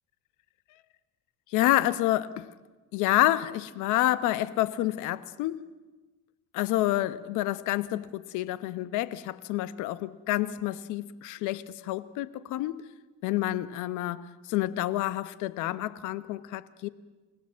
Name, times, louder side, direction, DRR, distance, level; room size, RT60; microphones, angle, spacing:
voice 1, 1.5-2.5 2.9-5.6 6.5-12.8 13.2-16.9, left 15 dB, 85° left, 1.1 m, -28 dB
28.0 x 18.0 x 7.5 m
cardioid pair, 155°, 30 cm